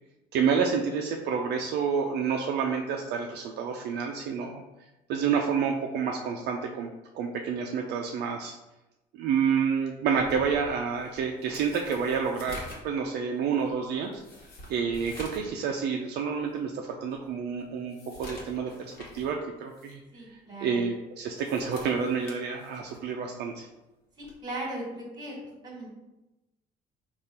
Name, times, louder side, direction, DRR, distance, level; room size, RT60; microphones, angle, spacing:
voice 1, 0.3-4.6 5.1-6.9 7.1-8.6 9.1-14.2 14.7-20.0 20.6-23.7, right 6 dB, 65° right, 1 dB, 0.4 m, -29 dB
sound 1, 10.2-15.6 15.9-16.0 16.6-16.7 17.1-19.3 19.7-19.9 21.2-23.1 24.2-24.4, left 1 dB, 55° left, 1.1 m, -47 dB
voice 2, 20.1-20.8 24.2-25.4 25.6-25.9, right 1 dB, 25° right, -2 dB, 1.5 m, -38 dB
3.6 x 2.4 x 4.1 m, 0.99 s
cardioid pair, 115°, 18 cm